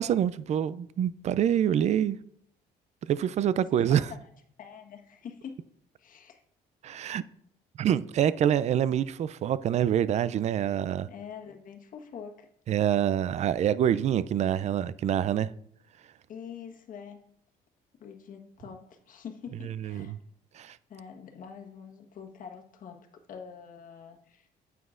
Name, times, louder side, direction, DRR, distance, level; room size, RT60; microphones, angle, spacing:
voice 1, 0.0-2.2 3.0-4.1 6.8-7.2 7.8-11.1 12.7-15.5 19.7-20.2 20.5-20.8, right 10 dB, 40° right, 0.4 m, -26 dB
voice 2, 4.6-5.6 6.0-6.4 11.1-12.5 16.3-17.2 18.0-20.1 20.9-23.0 23.3-24.5, left 7 dB, 55° left, 1.3 m, -45 dB
9.2 x 8.1 x 2.5 m
cardioid pair, 110°, 17 cm